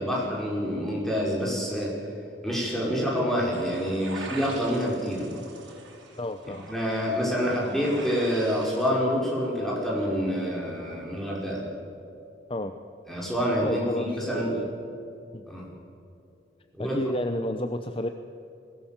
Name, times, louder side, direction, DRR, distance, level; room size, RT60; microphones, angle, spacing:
voice 1, 0.0-2.0 2.4-5.2 6.7-11.6 13.1-14.6 15.5-15.7 16.7-17.0, equal, ahead, -4 dB, 5.3 m, -27 dB
sound 1, 3.5-8.9, right 2 dB, 85° right, 4.1 m, -43 dB
voice 2, 6.2-6.7 7.5-7.7 12.5-12.7 13.6-14.7 15.3-15.4 16.8-18.1, left 1 dB, 30° left, 8 dB, 0.7 m, -31 dB
21.5 x 17.5 x 7.4 m, 2.7 s
head